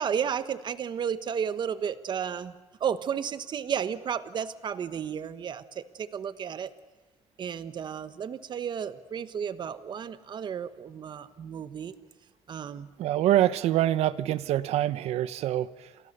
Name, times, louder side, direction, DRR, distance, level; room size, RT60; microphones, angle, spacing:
voice 1, 0.0-2.5 2.8-6.7 7.4-11.9 12.5-12.9, right 8 dB, 45° right, 13 dB, 1.3 m, -33 dB
voice 2, 13.0-15.9, right 13 dB, 85° right, 16 dB, 1.0 m, -25 dB
30.0 x 27.0 x 6.8 m, 1.1 s
cardioid pair, 130°, 11 cm